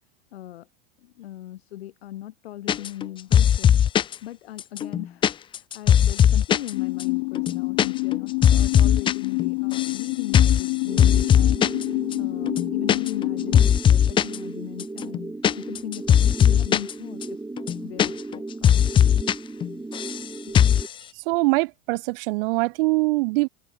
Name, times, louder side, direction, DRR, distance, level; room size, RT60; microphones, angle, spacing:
voice 1, 0.3-0.7 1.0-3.8 4.2-11.6 11.9-15.2 15.6-17.4 17.8-19.2 20.5-20.6, left 13 dB, 80° left, 7.6 m, -39 dB
sound 1, 2.7-3.1 3.3-4.2 4.6-6.7 7.0-7.1 7.4-7.9 8.1-9.1 9.4-10.0 10.3-10.7 11.0-11.8 12.1-12.2 12.5-13.3 13.5-14.4 14.8-16.9 17.2-17.3 17.6-18.4 18.6-19.3 19.6-20.2 20.5-20.9, left 9 dB, 15° left, 0.3 m, -18 dB
sound 2, 6.7-13.6, left 34 dB, 60° left, 3.8 m, -27 dB
sound 3, 10.9-20.9, right 2 dB, 10° right, 4.6 m, -36 dB
voice 2, 21.3-23.5, right 25 dB, 65° right, 1.2 m, -23 dB
hypercardioid pair, 100°, 31 cm